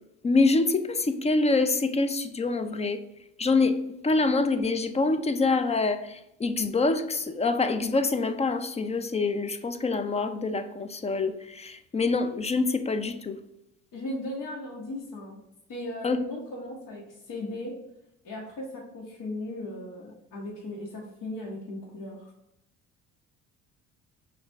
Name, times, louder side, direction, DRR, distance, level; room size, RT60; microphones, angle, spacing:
voice 1, 0.2-0.7 1.1-3.0 3.4-3.7 4.0-6.0 6.4-11.3 11.9-13.3 16.0-16.2, left 3 dB, 20° left, 0.4 m, -25 dB
voice 2, 13.9-15.4 15.7-17.7 18.2-22.3, left 1 dB, 60° left, 1.3 m, -37 dB
5.8 x 2.5 x 3.4 m
supercardioid pair, 70°, 35 cm